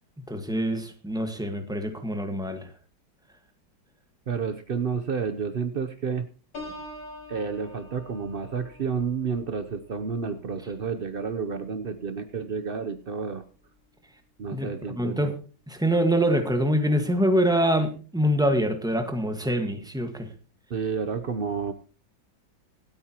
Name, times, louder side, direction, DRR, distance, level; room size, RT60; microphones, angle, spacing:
voice 1, 0.3-2.7 14.5-14.7 15.0-15.3 15.7-20.3, equal, ahead, 6 dB, 1.2 m, -25 dB
voice 2, 4.3-6.3 7.3-13.4 14.4-15.3 20.7-21.7, right 6 dB, 80° right, 9 dB, 0.5 m, -30 dB
Piano, 6.5-12.2 12.6-13.0, left 1 dB, 75° left, 5.5 m, -46 dB
25.5 x 8.7 x 2.9 m, 0.36 s
omnidirectional pair, 2.1 m